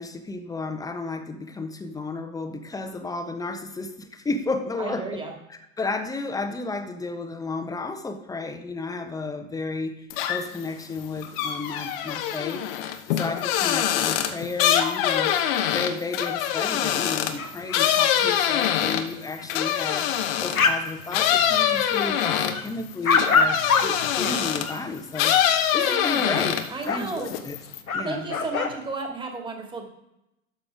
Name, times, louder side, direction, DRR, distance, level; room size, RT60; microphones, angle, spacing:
voice 1, 0.0-5.2 5.5-20.1 20.4-26.6 26.8-27.6 27.9-28.3, left 3 dB, 10° left, 7 dB, 1.0 m, -32 dB
voice 2, 4.8-5.3 18.8-18.9 25.8-27.4 28.0-29.8, right 4 dB, 10° right, 2 dB, 2.1 m, -34 dB
sound 1, 10.1-10.6 11.0-20.7 21.1-24.8 25.1-26.8 27.2-27.8, left 10 dB, 40° left, 1.0 m, -24 dB
sound 2, 17.4-17.8 18.2-18.3 18.5-18.7 19.4-19.5 19.9-20.9 21.1-21.9 22.2-24.8 25.7-26.6 26.9-27.0 27.6-27.7 27.9-28.8, left 5 dB, 80° left, 1.2 m, -25 dB
12.5 x 6.6 x 3.5 m, 0.88 s
figure-of-eight pair, 95°, 42 cm